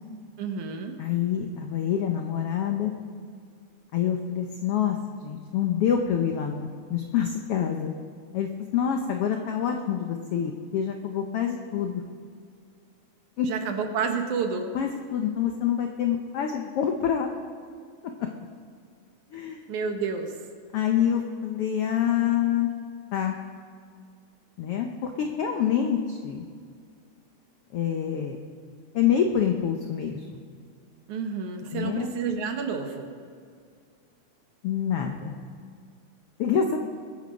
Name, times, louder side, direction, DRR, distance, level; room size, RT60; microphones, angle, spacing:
voice 1, 0.4-1.0 13.4-14.7 19.7-20.4 31.1-33.1, right 5 dB, 70° right, 5 dB, 2.4 m, -30 dB
voice 2, 1.0-2.9 3.9-7.9 8.3-12.0 13.4-13.5 14.7-17.3 18.0-18.3 19.3-19.6 20.7-22.7 23.1-23.3 24.6-26.4 27.7-28.4 28.9-30.4 31.7-32.1 34.6-35.4 36.4-36.8, left 8 dB, 75° left, 4 dB, 1.3 m, -26 dB
22.0 x 8.6 x 5.2 m, 2.2 s
omnidirectional pair, 3.6 m